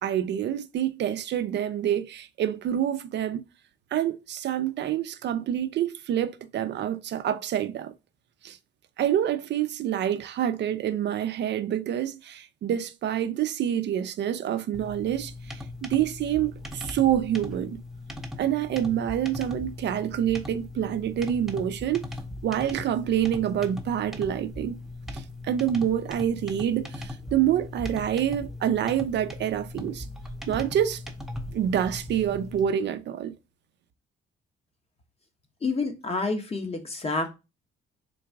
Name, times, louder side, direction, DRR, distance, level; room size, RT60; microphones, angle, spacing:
voice 1, 0.0-3.4 3.9-7.9 8.4-8.6 9.0-17.8 18.4-22.0 22.4-24.8 25.1-30.0 30.5-31.0 31.5-33.3, right 10 dB, 60° right, 0.4 m, -27 dB
sound 1, 14.7-32.6, left 2 dB, ahead, 0.6 m, -39 dB
voice 2, 35.6-37.3, left 3 dB, 30° left, 1.0 m, -28 dB
3.9 x 2.3 x 4.5 m
cardioid pair, 90°, 20 cm